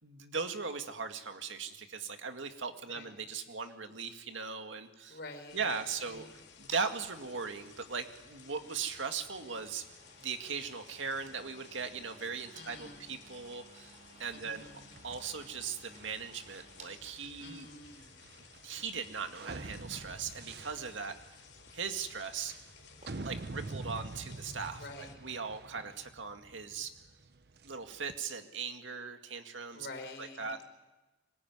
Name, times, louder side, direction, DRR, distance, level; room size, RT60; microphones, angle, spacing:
voice 1, 0.0-5.2 5.5-6.3 6.6-9.8 10.2-14.7 15.0-17.7 18.6-21.2 21.7-22.5 23.2-26.9 27.6-29.9 30.2-30.6, right 5 dB, 85° right, 6 dB, 2.1 m, -39 dB
sound 1, 4.9-23.6, right 3 dB, 40° right, 4.7 m, -60 dB
voice 2, 5.1-5.6 12.5-13.0 14.3-14.9 17.4-18.1 24.8-25.1 29.7-30.5, left 2 dB, 60° left, 5 dB, 4.8 m, -47 dB
sound 2, 5.5-25.2, left 6 dB, 85° left, 4.7 m, -57 dB
sound 3, 14.9-28.2, right 3 dB, 55° right, 0.8 m, -47 dB
25.0 x 20.5 x 9.5 m, 1.1 s
head